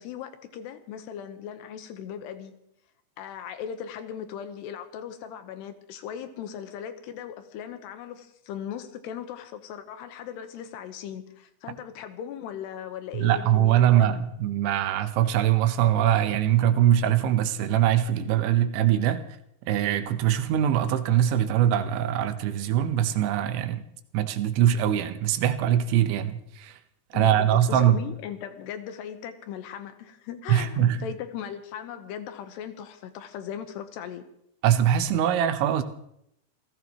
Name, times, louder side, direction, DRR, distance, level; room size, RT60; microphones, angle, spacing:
voice 1, 0.0-2.5 3.2-14.2 27.1-34.2, left 9 dB, 75° left, 9 dB, 3.0 m, -38 dB
voice 2, 13.2-19.2 19.7-23.8 24.1-26.8 27.1-28.0 30.5-31.0 34.6-35.8, right 11 dB, 85° right, 9 dB, 3.4 m, -22 dB
28.5 x 16.0 x 3.1 m, 0.75 s
omnidirectional pair, 5.2 m